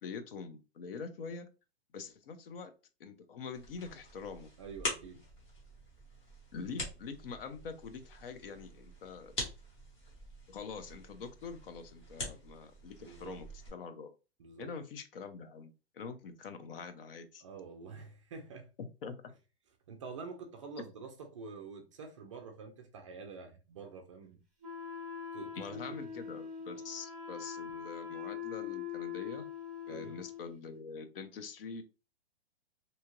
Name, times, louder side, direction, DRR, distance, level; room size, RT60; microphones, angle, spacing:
voice 1, 0.0-1.5 1.9-2.7 3.0-4.5 6.5-9.3 10.5-14.1 14.6-17.4 18.8-19.1 25.6-29.5 29.9-31.8, left 5 dB, 60° left, 0.6 m, -45 dB
sound 1, 3.5-13.7, left 1 dB, 30° left, 1.2 m, -45 dB
voice 2, 4.6-5.2 13.0-13.4 14.4-14.7 17.4-18.7 19.9-24.4 25.3-26.0 29.9-30.2, right 4 dB, 30° right, 0.4 m, -47 dB
Wind instrument woodwind instrument, 24.6-30.5, left 7 dB, ahead, 0.8 m, -42 dB
2.8 x 2.3 x 2.9 m
hypercardioid pair, 160°, 32 cm